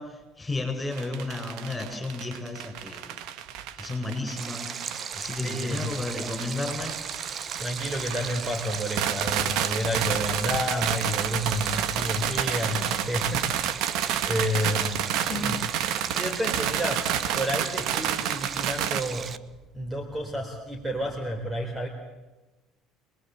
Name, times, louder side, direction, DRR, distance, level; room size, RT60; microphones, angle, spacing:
voice 1, 0.0-3.1 3.8-4.8 5.1-6.9, left 2 dB, 15° left, 5 dB, 7.7 m, -33 dB
sound 1, 0.9-19.0, right 10 dB, 70° right, 1.6 m, -30 dB
Stream, 4.4-19.4, right 6 dB, 35° right, 1.1 m, -37 dB
voice 2, 5.4-5.9 7.6-19.3 19.7-21.9, equal, 15° right, 4 dB, 3.8 m, -31 dB
27.0 x 21.0 x 8.0 m, 1.1 s
cardioid pair, 120°, 0 cm